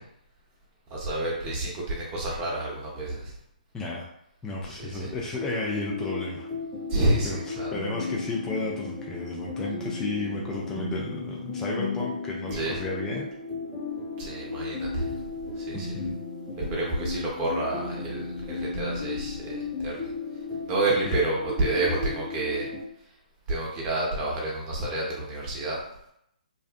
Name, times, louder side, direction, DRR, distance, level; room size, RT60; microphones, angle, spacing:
voice 1, 0.9-3.3 4.6-5.1 6.9-7.7 12.5-12.8 14.2-15.2 15.6-15.9 16.6-19.5 19.8-20.0 20.7-22.7 23.5-25.8, right 2 dB, 25° right, -3 dB, 0.8 m, -29 dB
voice 2, 3.7-4.1 4.4-6.5 7.2-13.3 15.7-16.2 21.0-21.2, left 2 dB, 10° left, -3 dB, 0.3 m, -33 dB
sound 1, 5.3-22.8, left 4 dB, 10° right, 1.1 m, -35 dB
2.6 x 2.1 x 2.4 m, 0.75 s
hypercardioid pair, 135°, 5 cm